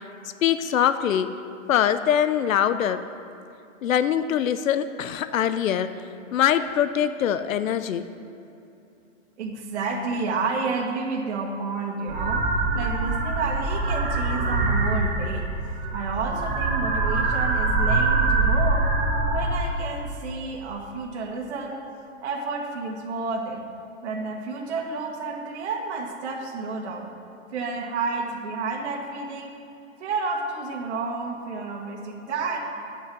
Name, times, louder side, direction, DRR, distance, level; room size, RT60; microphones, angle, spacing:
voice 1, 0.4-1.4 1.7-3.0 3.8-6.0 6.3-8.1, left 9 dB, 80° left, 12 dB, 0.7 m, -23 dB
voice 2, 9.4-12.5 12.7-15.5 15.9-18.8 19.3-21.8 22.2-23.6 24.0-27.1 27.5-29.5 30.0-32.6, right 4 dB, 55° right, 0 dB, 1.7 m, -30 dB
sound 1, 12.1-19.4, right 3 dB, 40° right, 2.3 m, -24 dB
9.6 x 8.0 x 6.1 m, 2.8 s
hypercardioid pair, 150°, 40 cm